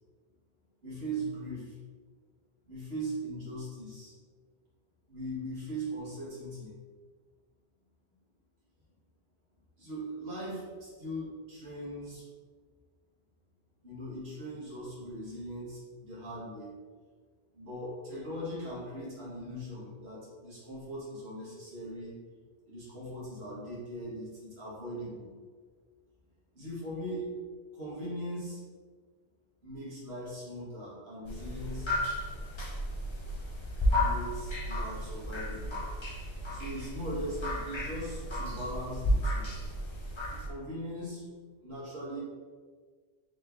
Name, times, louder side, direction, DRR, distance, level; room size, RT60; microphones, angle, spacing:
voice 1, 0.8-1.8 2.7-4.1 5.1-6.7 9.8-12.2 13.8-16.7 17.5-22.2 22.7-25.3 26.5-27.3 27.7-28.6 29.6-31.9 33.9-35.8 36.5-39.5 40.3-41.2 41.6-42.2, equal, 55° right, -8 dB, 1.8 m, -40 dB
sound 1, 31.2-40.5, equal, 30° left, 0.5 m, -33 dB
3.9 x 3.2 x 3.5 m, 1.5 s
omnidirectional pair, 1.3 m